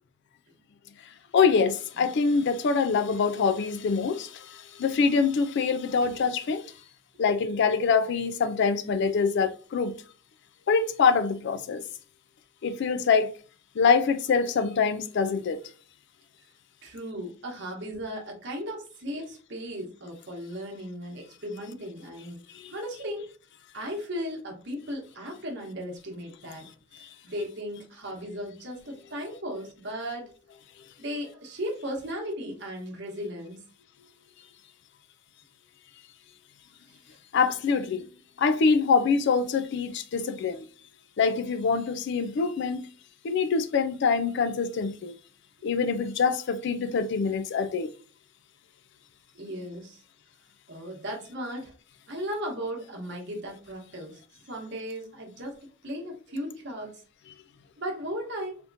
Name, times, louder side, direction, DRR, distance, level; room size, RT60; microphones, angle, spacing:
voice 1, 1.3-6.6 7.2-9.9 10.7-11.8 12.6-13.3 13.8-15.6 22.5-22.7 27.0-27.1 37.3-38.0 38.4-40.7 41.2-42.8 43.2-45.1 45.6-47.9, left 5 dB, 55° left, 0.3 m, -25 dB
voice 2, 16.8-22.4 22.7-23.3 23.7-26.7 26.9-30.3 31.0-33.6 49.3-50.0 50.7-51.7 52.1-54.2 54.5-55.6 55.8-57.0 57.8-58.6, equal, 55° right, 1.0 m, -36 dB
3.4 x 2.8 x 2.6 m
head